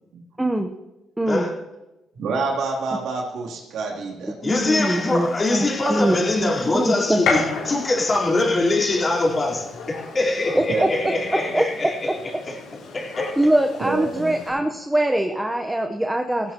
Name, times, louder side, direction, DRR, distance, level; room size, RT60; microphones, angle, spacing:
voice 1, 0.4-0.7 1.2-1.5 4.4-7.2 10.5-10.9 11.5-11.6 13.4-16.5, right 1 dB, 10° right, 1.0 m, -23 dB
voice 2, 2.1-4.5 10.7-11.2 13.8-14.6, right 3 dB, 80° right, 3.0 m, -28 dB
voice 3, 4.4-12.6 12.9-13.4, left 2 dB, 35° left, 4.0 m, -23 dB
Gunshot gunfire, 4.5-14.5, left 4 dB, 85° left, 5.0 m, -33 dB
17.0 x 16.5 x 3.0 m
cardioid pair, 90°, 0 cm